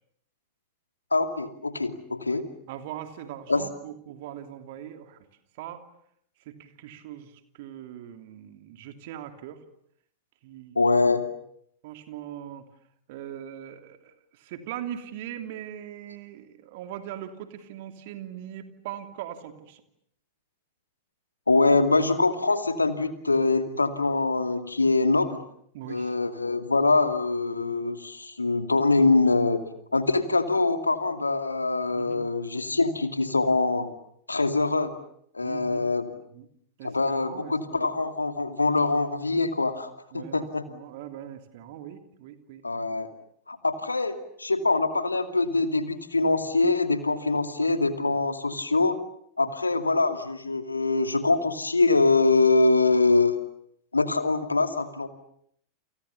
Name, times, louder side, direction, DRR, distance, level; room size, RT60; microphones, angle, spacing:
voice 1, 1.1-2.5 3.5-3.6 10.8-11.3 21.5-25.4 25.9-29.6 29.9-33.9 34.3-34.9 35.3-36.1 36.8-40.6 42.6-43.1 43.5-49.0 49.4-53.4 53.9-55.1, left 3 dB, 80° left, 8 dB, 2.5 m, -24 dB
voice 2, 2.7-5.2 5.6-5.8 6.5-9.6 10.4-10.8 11.8-12.7 13.1-19.8 25.7-26.2 31.9-32.2 35.4-36.5 36.8-36.9 37.2-37.9 40.1-42.7 49.4-49.5, right 11 dB, 50° right, 7 dB, 3.0 m, -40 dB
30.0 x 28.0 x 7.1 m, 0.70 s
figure-of-eight pair, 90°, 0 cm